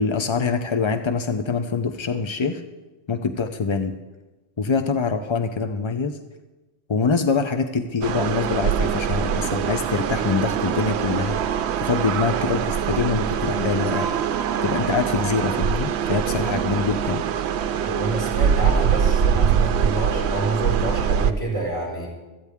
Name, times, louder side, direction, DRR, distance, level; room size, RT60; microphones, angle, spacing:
voice 1, 0.0-2.6 3.1-3.9 4.6-6.2 6.9-14.1 14.6-17.3, left 5 dB, 45° left, 7 dB, 0.3 m, -24 dB
sound 1, 8.0-21.3, right 8 dB, 65° right, 0.8 m, -23 dB
voice 2, 17.8-22.1, right 2 dB, 15° left, -4 dB, 5.0 m, -27 dB
16.5 x 13.5 x 3.6 m, 1.2 s
omnidirectional pair, 1.2 m